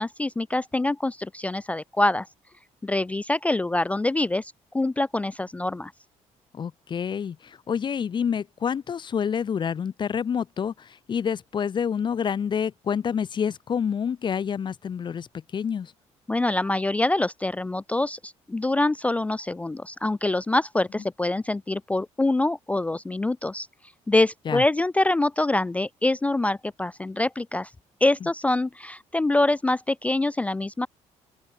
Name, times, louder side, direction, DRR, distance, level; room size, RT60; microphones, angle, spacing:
voice 1, 0.0-2.3 2.8-5.9 16.3-23.7 24.1-27.7 28.0-30.9, left 2 dB, 10° left, 0.3 m, -25 dB
voice 2, 6.5-15.9 24.5-24.6 28.2-28.3, left 7 dB, 40° left, 1.7 m, -28 dB
open air
cardioid pair, 130°, 13 cm